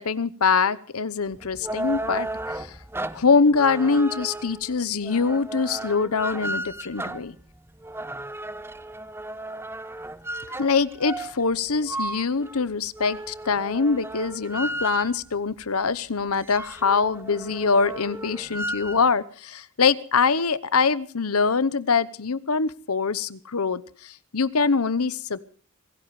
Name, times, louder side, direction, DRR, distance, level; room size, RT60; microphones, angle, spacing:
voice 1, 0.0-2.8 3.1-7.4 10.5-25.4, left 5 dB, 85° left, 16 dB, 1.0 m, -24 dB
sound 1, 1.3-15.4 15.8-15.9 16.2-19.1, right 1 dB, 10° right, 0.9 m, -34 dB
26.0 x 17.0 x 3.2 m, 0.43 s
head